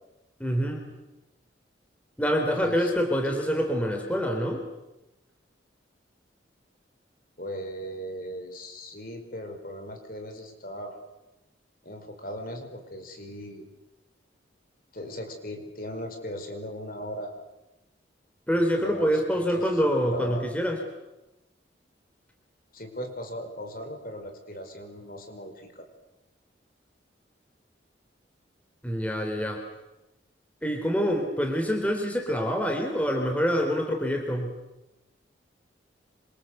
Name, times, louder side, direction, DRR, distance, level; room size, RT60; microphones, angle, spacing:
voice 1, 0.4-0.9 2.2-4.6 18.5-20.8 28.8-29.6 30.6-34.6, equal, 5° left, 3 dB, 3.9 m, -26 dB
voice 2, 2.5-2.9 3.2-3.5 7.4-11.0 11.8-13.7 14.9-17.3 18.5-19.1 19.3-19.8 20.0-20.4 22.7-25.8, equal, 50° left, 5 dB, 5.2 m, -38 dB
27.0 x 26.0 x 8.0 m, 0.98 s
head